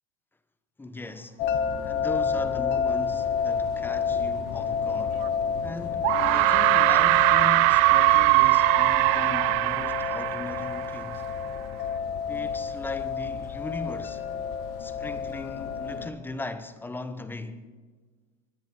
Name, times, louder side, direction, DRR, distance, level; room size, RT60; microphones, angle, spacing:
voice 1, 0.8-1.4 1.8-5.3 5.6-11.2 12.3-14.2 14.8-17.6, left 2 dB, 10° left, 1.1 m, -38 dB
sound 1, 1.4-16.1, left 6 dB, 55° left, 1.5 m, -30 dB
sound 2, 5.2-5.3 6.0-11.2, right 22 dB, 60° right, 0.4 m, -21 dB
24.0 x 10.0 x 4.5 m
supercardioid pair, 105°, 20 cm